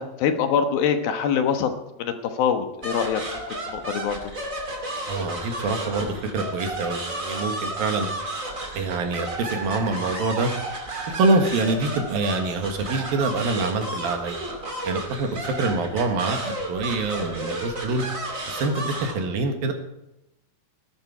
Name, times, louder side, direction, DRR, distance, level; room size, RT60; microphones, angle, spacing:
voice 1, 0.0-1.7 2.0-4.2, left 7 dB, 70° left, 7 dB, 2.9 m, -24 dB
sound 1, 2.8-19.1, right 2 dB, 25° right, 2.1 m, -32 dB
voice 2, 5.1-8.1 8.7-10.5 11.1-14.4 14.8-18.0 18.5-19.7, right 3 dB, 65° right, 5 dB, 3.3 m, -25 dB
18.5 x 11.5 x 4.9 m, 0.88 s
omnidirectional pair, 4.6 m